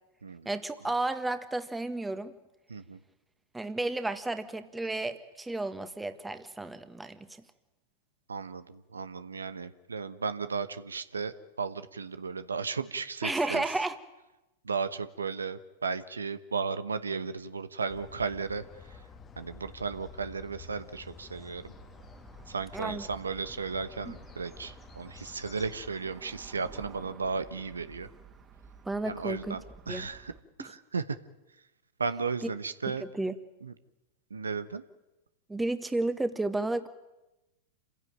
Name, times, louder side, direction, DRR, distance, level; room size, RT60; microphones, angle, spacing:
voice 1, 0.5-2.3 3.5-7.4 13.2-14.0 22.7-23.1 24.1-24.2 28.9-29.6 29.9-30.1 30.6-30.7 32.4-32.5 32.9-33.3 35.5-36.9, right 2 dB, 10° right, 9 dB, 1.7 m, -32 dB
voice 2, 8.3-13.6 14.6-18.6 19.4-21.7 22.5-28.1 29.0-30.3 30.6-31.0 32.0-33.0 33.6-33.7 34.3-34.8, right 5 dB, 90° right, 12 dB, 1.1 m, -35 dB
sound 1, 17.9-25.9, left 5 dB, 25° left, 1.6 m, -50 dB
sound 2, 21.7-30.4, right 6 dB, 25° right, 2.5 m, -53 dB
27.5 x 16.0 x 9.1 m, 1.0 s
hypercardioid pair, 100°, 0 cm